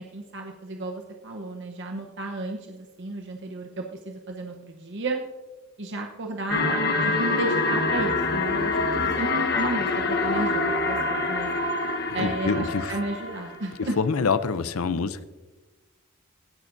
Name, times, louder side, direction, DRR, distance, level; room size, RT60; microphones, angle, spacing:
voice 1, 0.0-5.2 5.8-11.5 12.1-14.0, right 2 dB, 60° right, 2 dB, 0.9 m, -33 dB
sound 1, 6.5-13.7, left 3 dB, 50° left, 1.1 m, -26 dB
voice 2, 12.1-13.0 13.8-15.2, left 5 dB, 90° left, 14 dB, 0.6 m, -26 dB
17.5 x 10.5 x 2.6 m, 1.2 s
head